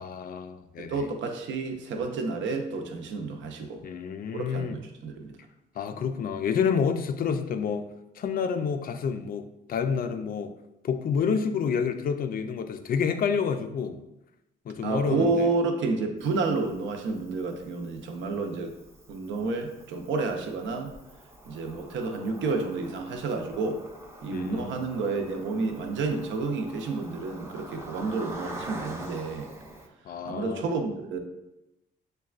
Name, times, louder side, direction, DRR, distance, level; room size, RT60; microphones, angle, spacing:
voice 1, 0.0-1.0 3.8-4.8 5.8-7.9 8.2-10.6 10.8-14.0 14.7-15.5 24.3-24.8 30.1-30.7, left 6 dB, 45° left, 8 dB, 0.4 m, -29 dB
voice 2, 0.8-3.8 4.3-5.4 14.8-18.7 19.1-20.9 21.5-23.8 24.2-29.5 30.3-31.2, right 3 dB, 70° right, 4 dB, 0.6 m, -30 dB
Cricket, 16.2-29.9, right 1 dB, 15° right, 0.6 m, -45 dB
6.4 x 2.2 x 2.4 m, 0.92 s
cardioid pair, 90°, 20 cm